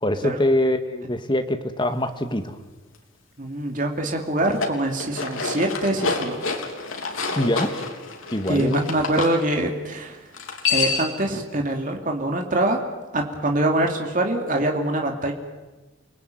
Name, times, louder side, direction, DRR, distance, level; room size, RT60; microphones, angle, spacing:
voice 1, 0.0-2.6 7.4-7.8 8.3-8.9, left 1 dB, 25° left, 7 dB, 1.9 m, -24 dB
voice 2, 3.4-6.6 8.5-10.2 10.7-12.8 13.1-15.3, right 1 dB, 40° right, 2 dB, 2.9 m, -24 dB
sound 1, 4.4-9.3 10.3-11.2, left 4 dB, 85° left, 3.6 m, -28 dB
30.0 x 20.5 x 9.3 m, 1.2 s
head